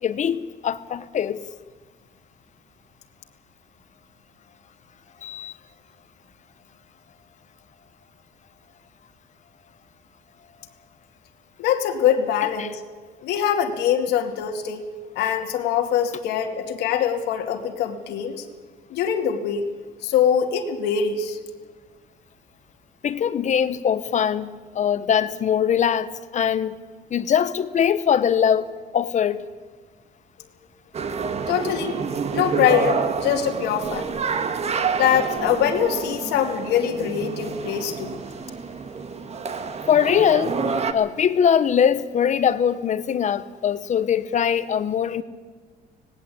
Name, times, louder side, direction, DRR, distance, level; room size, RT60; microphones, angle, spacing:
voice 1, 0.0-1.4 5.2-5.6 12.6-12.7 23.0-26.8 27.1-29.4 39.9-40.6 40.9-45.2, left 8 dB, 45° left, 13 dB, 1.0 m, -22 dB
voice 2, 11.6-12.8 13.2-14.8 15.2-18.5 18.9-19.6 20.0-21.4 31.5-31.9 32.3-34.1 34.9-38.1, left 8 dB, 85° left, 3 dB, 2.4 m, -23 dB
sound 1, 30.9-40.9, right 5 dB, 40° right, 1.6 m, -28 dB
18.0 x 17.0 x 8.6 m, 1.5 s
cardioid pair, 110°, 17 cm